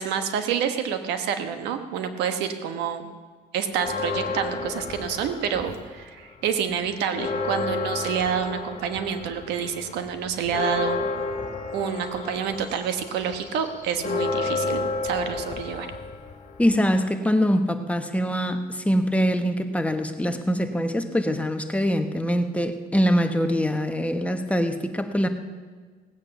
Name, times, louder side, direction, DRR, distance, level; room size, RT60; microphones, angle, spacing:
voice 1, 0.0-3.1 3.5-11.0 11.7-15.9, right 7 dB, 90° right, 8 dB, 1.3 m, -28 dB
Church bell, 3.7-6.1 6.5-6.6 6.9-17.0, left 3 dB, 45° left, 2.1 m, -31 dB
voice 2, 16.6-25.3, equal, 10° left, 7 dB, 1.1 m, -23 dB
17.5 x 8.7 x 7.0 m, 1.5 s
cardioid pair, 110°, 17 cm